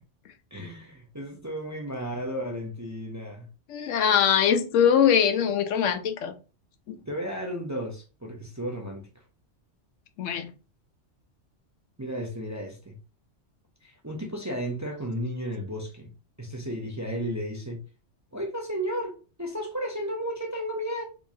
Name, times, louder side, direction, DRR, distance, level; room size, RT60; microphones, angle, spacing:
voice 1, 0.5-3.5 7.0-9.0 12.0-12.9 13.8-16.1 16.4-17.8 18.3-21.0, equal, 20° right, 0.5 m, -33 dB
voice 2, 3.7-6.3 6.9-7.0 10.2-10.5, left 8 dB, 80° left, 1.0 m, -22 dB
3.6 x 3.0 x 2.6 m
omnidirectional pair, 1.3 m